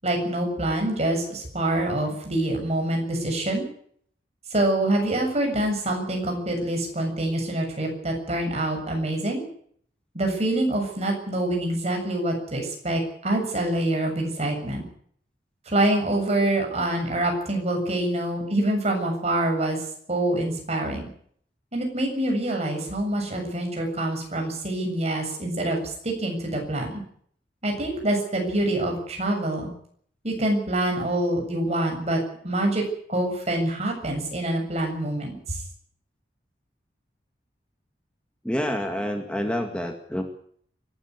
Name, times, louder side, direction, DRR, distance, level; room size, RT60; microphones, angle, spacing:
voice 1, 0.0-3.7 4.5-9.4 10.1-14.8 15.7-19.8 20.1-21.1 21.7-27.0 27.6-29.7 30.2-32.8 33.1-35.6, right 1 dB, 40° right, 2 dB, 7.3 m, -26 dB
voice 2, 38.4-40.2, equal, 5° left, 4 dB, 2.1 m, -28 dB
24.0 x 13.0 x 9.7 m, 0.63 s
head